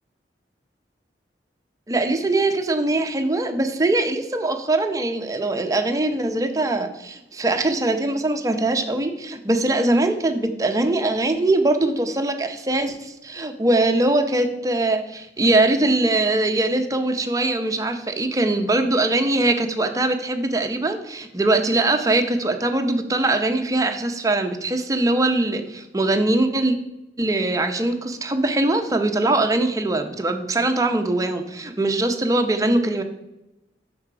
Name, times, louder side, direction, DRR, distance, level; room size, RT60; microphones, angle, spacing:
voice 1, 1.9-26.7 27.2-33.0, right 2 dB, 20° right, 5 dB, 0.6 m, -22 dB
6.7 x 5.0 x 4.7 m, 0.93 s
head